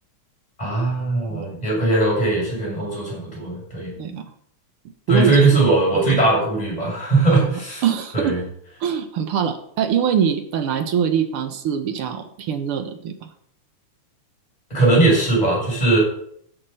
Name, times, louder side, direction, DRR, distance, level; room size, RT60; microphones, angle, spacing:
voice 1, 0.6-3.9 5.1-7.8 8.1-8.4 14.7-16.0, right 2 dB, 10° left, -5 dB, 6.5 m, -19 dB
voice 2, 5.1-5.6 5.9-6.2 7.3-8.4 8.8-13.3, right 8 dB, 60° right, 8 dB, 1.7 m, -24 dB
14.0 x 7.1 x 5.6 m, 0.67 s
omnidirectional pair, 3.4 m